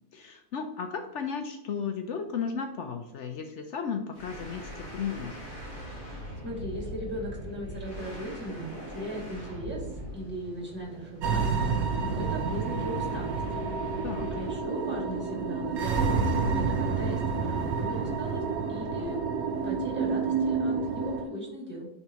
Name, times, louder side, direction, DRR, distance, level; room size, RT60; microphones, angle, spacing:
voice 1, 0.1-5.4 14.0-14.3, left 6 dB, 65° left, 5 dB, 0.8 m, -34 dB
sound 1, 4.1-14.7, equal, 35° left, 1.6 m, -41 dB
voice 2, 6.4-11.7 12.0-13.4 14.3-18.4 18.7-19.2 19.6-21.9, right 1 dB, 5° right, -3 dB, 2.1 m, -38 dB
sound 2, 11.2-21.3, right 4 dB, 80° right, 1.3 m, -29 dB
9.7 x 3.5 x 3.0 m, 0.80 s
omnidirectional pair, 1.5 m